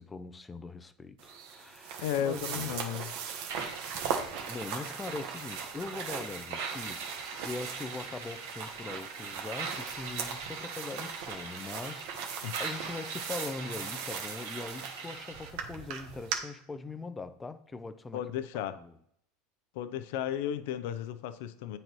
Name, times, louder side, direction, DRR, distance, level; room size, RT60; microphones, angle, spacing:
voice 1, 0.0-2.8 4.5-18.2 18.7-18.9, left 3 dB, 15° left, 0.4 m, -41 dB
sound 1, 1.2-16.4, right 7 dB, 65° right, 1.1 m, -39 dB
voice 2, 2.0-3.1 12.4-12.6 18.1-18.8 19.7-21.8, left 10 dB, 70° left, 0.5 m, -34 dB
sound 2, 3.5-15.5, right 5 dB, 85° right, 1.5 m, -41 dB
8.6 x 3.9 x 3.1 m
supercardioid pair, 130°, 0 cm